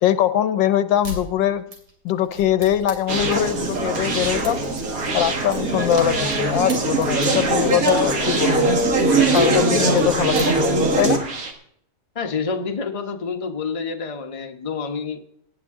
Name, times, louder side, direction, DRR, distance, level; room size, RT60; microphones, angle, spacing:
voice 1, 0.0-1.7 2.0-4.6 5.1-8.7 9.3-10.7 11.0-11.2, left 11 dB, 90° left, 12 dB, 1.5 m, -22 dB
sound 1, 1.0-1.2 1.7-6.4 6.7-8.9 9.3-9.4 9.8-11.0, equal, 75° right, 3.9 m, -38 dB
Conversation, 3.1-11.5, right 2 dB, 50° right, 2.0 m, -21 dB
voice 2, 12.1-15.2, left 5 dB, 25° left, 4 dB, 0.8 m, -28 dB
18.0 x 9.3 x 3.7 m, 0.67 s
omnidirectional pair, 2.0 m